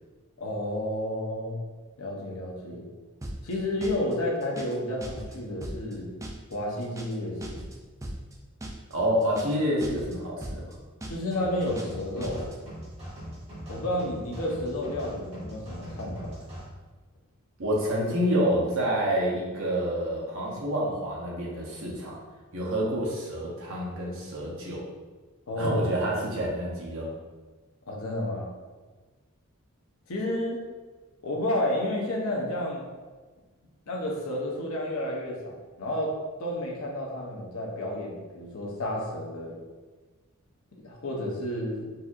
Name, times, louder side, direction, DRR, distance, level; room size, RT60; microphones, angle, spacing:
voice 1, 0.4-1.6 2.0-2.9 3.4-6.1 6.5-7.6 11.1-12.5 13.7-16.4 25.5-25.8 27.9-28.5 30.1-30.6 31.2-32.9 33.9-39.6 40.8-41.9, left 1 dB, 80° left, -1 dB, 0.7 m, -31 dB
sound 1, 3.2-3.5 3.8-4.1 4.4-4.8 5.0-5.4 5.6-5.9 6.2-6.5 6.8-7.2 7.4-8.3 8.6-8.9 9.2-9.6 9.8-10.2 10.4-10.7 11.0-11.3 11.6-12.0 12.2-12.6, right 1 dB, 15° right, 0.3 m, -38 dB
voice 2, 8.9-10.7 17.6-22.2 22.5-24.8 25.6-27.1, equal, 65° right, -4 dB, 0.9 m, -28 dB
sound 2, 11.3-16.7, equal, 30° right, 1.3 m, -41 dB
4.1 x 2.6 x 2.4 m, 1.3 s
head